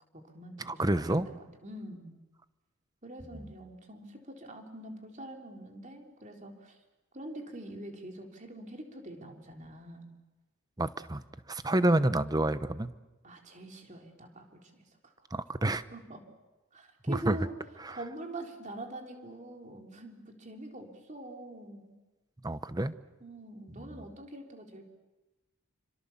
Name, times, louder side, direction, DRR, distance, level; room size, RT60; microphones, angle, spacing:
voice 1, 0.1-2.2 3.0-6.8 7.1-10.1 13.2-15.3 15.9-16.2 16.7-17.5 17.9-21.9 23.2-24.8, right 1 dB, 35° right, 3 dB, 3.4 m, -44 dB
voice 2, 0.7-1.3 10.8-11.2 11.5-12.9 15.3-15.8 17.1-17.4 17.8-18.0 22.4-22.9 23.8-23.9, right 1 dB, 20° right, 13 dB, 0.8 m, -28 dB
27.5 x 25.5 x 7.2 m, 1.1 s
head